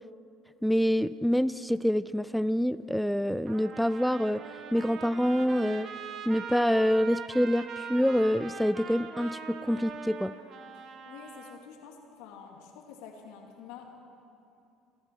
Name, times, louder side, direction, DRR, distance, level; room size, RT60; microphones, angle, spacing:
voice 1, 0.6-4.4 4.7-5.9 6.3-10.3, equal, ahead, 14 dB, 0.4 m, -26 dB
Trumpet, 3.5-11.6, right 6 dB, 50° right, 1.2 m, -42 dB
voice 2, 10.8-14.0, left 6 dB, 75° left, 1 dB, 2.2 m, -48 dB
28.5 x 11.0 x 4.6 m, 2.7 s
hypercardioid pair, 70°, 0 cm